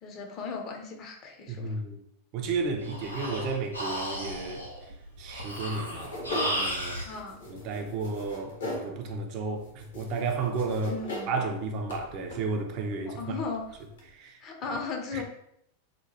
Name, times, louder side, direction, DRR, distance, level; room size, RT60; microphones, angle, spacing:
voice 1, 0.0-1.8 7.0-7.4 10.9-11.3 13.2-13.6 14.4-15.2, left 4 dB, 35° left, 0.5 m, -36 dB
voice 2, 1.5-2.0 2.3-7.0 7.5-11.0 11.3-13.4 14.1-14.4 14.7-14.8 15.1-15.2, right 3 dB, 40° right, 0.4 m, -33 dB
Breathing, 2.5-7.1, equal, 90° right, 0.6 m, -34 dB
sound 1, 5.7-14.1, left 1 dB, 65° left, 0.8 m, -41 dB
2.8 x 2.2 x 2.8 m
figure-of-eight pair, 90°, 0 cm